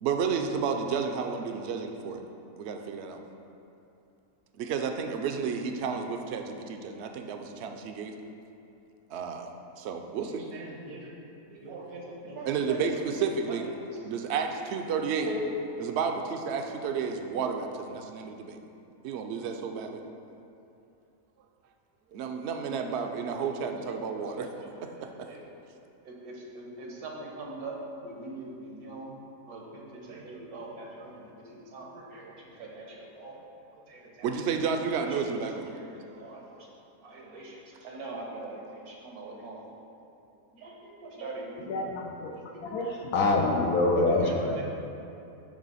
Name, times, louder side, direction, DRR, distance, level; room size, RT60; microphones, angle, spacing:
voice 1, 0.0-2.2 2.6-3.2 4.6-8.1 9.1-9.5 9.8-10.5 12.5-13.7 14.0-15.3 15.8-18.6 19.0-20.0 22.1-24.5 24.8-24.9 34.2-35.7, right 6 dB, 65° right, 5 dB, 0.7 m, -31 dB
voice 2, 10.2-11.1 11.5-13.2 15.2-15.4 22.9-23.5 24.2-25.4 26.0-27.8 28.0-29.2 29.5-33.4 33.9-34.3 35.0-35.2 35.7-36.7 37.0-39.7 40.5-42.1 42.5-43.0 43.9-44.6, right 3 dB, 80° right, -2 dB, 1.6 m, -42 dB
voice 3, 41.7-44.6, left 2 dB, 85° left, 1 dB, 1.2 m, -26 dB
9.0 x 3.3 x 5.5 m, 2.7 s
omnidirectional pair, 1.5 m